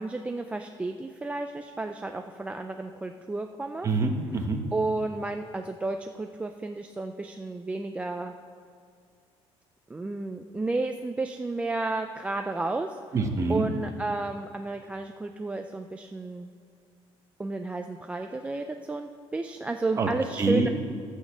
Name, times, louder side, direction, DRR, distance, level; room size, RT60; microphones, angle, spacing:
voice 1, 0.0-3.9 4.7-8.3 9.9-13.0 13.5-16.5 17.4-20.7, right 2 dB, 10° right, 5 dB, 0.3 m, -32 dB
voice 2, 3.8-4.6 13.1-13.7 20.0-20.1 20.4-20.7, right 3 dB, 30° right, 4 dB, 1.1 m, -25 dB
12.0 x 6.4 x 7.4 m, 2.3 s
cardioid pair, 155°, 11 cm